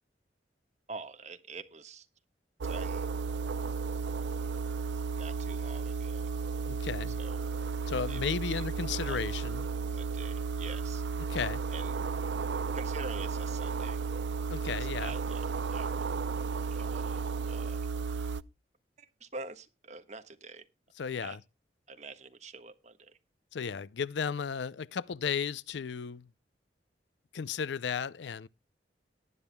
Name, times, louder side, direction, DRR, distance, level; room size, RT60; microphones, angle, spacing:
voice 1, 0.9-2.1 2.6-3.1 5.1-6.3 7.2-7.5 8.1-9.4 9.9-11.0 11.7-11.9 12.7-14.0 15.0-16.2 16.5-17.2 17.5-17.9 19.0-20.6 21.2-21.4 21.9-23.2, right 3 dB, 40° right, 1.4 m, -46 dB
sound 1, 2.6-18.4, right 5 dB, 80° right, 0.5 m, -34 dB
voice 2, 6.7-7.2 7.9-9.7 11.2-11.6 14.5-15.1 21.0-21.4 23.5-26.3 27.3-28.5, left 6 dB, 80° left, 0.5 m, -34 dB
19.0 x 10.5 x 2.3 m
head